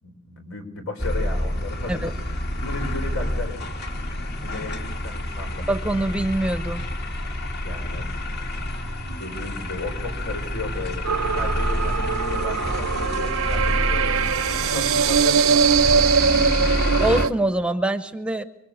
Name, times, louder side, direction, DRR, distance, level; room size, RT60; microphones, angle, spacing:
voice 1, 0.0-2.1 2.5-3.6 4.4-5.7 7.6-8.1 9.2-16.1, left 2 dB, 75° left, 5 dB, 5.3 m, -35 dB
sound 1, 1.0-17.3, left 1 dB, 50° left, 2.6 m, -28 dB
voice 2, 5.7-6.9 17.0-18.4, right 1 dB, 5° right, 10 dB, 0.9 m, -24 dB
sound 2, 11.0-17.3, right 6 dB, 80° right, 0.8 m, -21 dB
25.5 x 24.0 x 7.2 m, 0.93 s
head